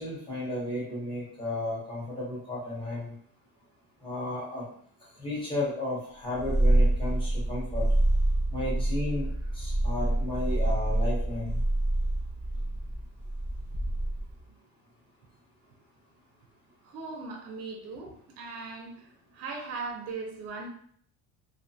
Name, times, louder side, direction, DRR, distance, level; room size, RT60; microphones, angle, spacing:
voice 1, 0.0-3.1 4.0-4.6 5.2-7.9 8.5-9.3 9.5-11.6, left 1 dB, 15° left, -6 dB, 0.8 m, -33 dB
Purr, 6.4-14.4, right 1 dB, 40° left, 1.0 m, -27 dB
voice 2, 16.8-20.7, right 4 dB, 45° right, 1 dB, 0.4 m, -39 dB
2.4 x 2.1 x 2.6 m, 0.62 s
cardioid pair, 160°, 35 cm